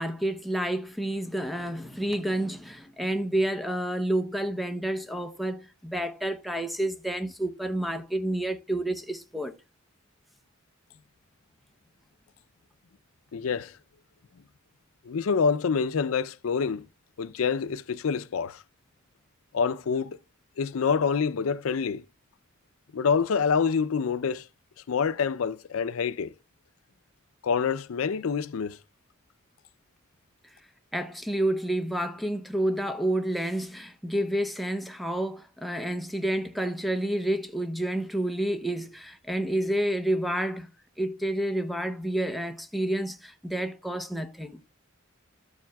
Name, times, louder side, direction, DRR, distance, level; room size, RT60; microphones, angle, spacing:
voice 1, 0.0-9.5 30.9-40.7 41.0-44.6, right 1 dB, ahead, 0.7 m, -29 dB
voice 2, 13.3-13.7 15.0-16.9 17.2-18.6 19.5-20.2 20.6-22.0 22.9-24.4 24.9-26.3 27.4-28.8, left 5 dB, 90° left, 0.5 m, -26 dB
12.5 x 7.3 x 2.3 m
head